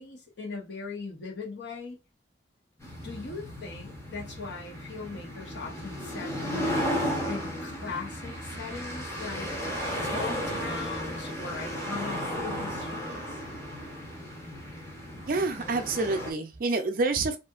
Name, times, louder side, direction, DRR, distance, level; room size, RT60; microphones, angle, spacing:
voice 1, 0.0-2.0 3.0-9.5 10.0-13.4, left 4 dB, 75° left, 1.0 m, -40 dB
sound 1, 2.8-16.3, equal, 15° left, 0.7 m, -34 dB
voice 2, 15.3-17.4, right 3 dB, 50° right, 0.4 m, -27 dB
2.7 x 2.5 x 2.3 m
head